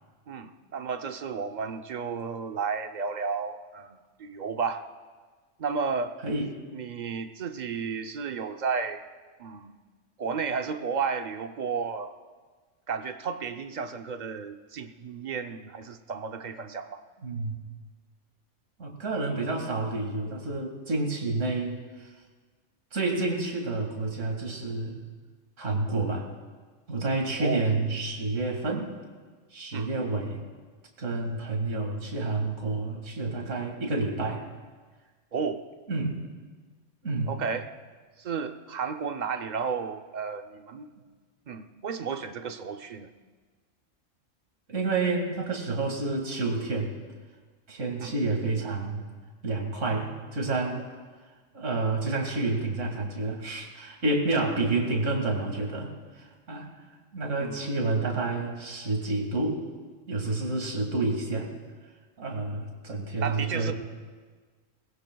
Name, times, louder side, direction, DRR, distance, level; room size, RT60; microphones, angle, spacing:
voice 1, 0.3-4.8 5.6-6.1 6.7-9.0 9.4-9.7 10.2-12.1 12.9-17.0 27.4-27.7 29.7-30.1 35.3-35.6 37.3-37.7 38.2-40.9 41.5-43.1 48.0-48.1 57.4-57.7 63.2-63.7, right 5 dB, 45° right, 8 dB, 0.6 m, -33 dB
voice 2, 17.2-17.5 18.8-22.1 22.9-25.0 25.6-26.3 26.9-28.9 29.5-30.4 31.0-34.4 35.9-36.2 37.0-37.4 44.7-47.0 47.7-49.1 49.4-50.8 51.5-56.7 57.1-59.6 60.1-61.5 62.2-63.7, right 3 dB, 75° right, 1 dB, 2.4 m, -29 dB
22.5 x 19.5 x 2.3 m, 1.4 s
omnidirectional pair, 1.3 m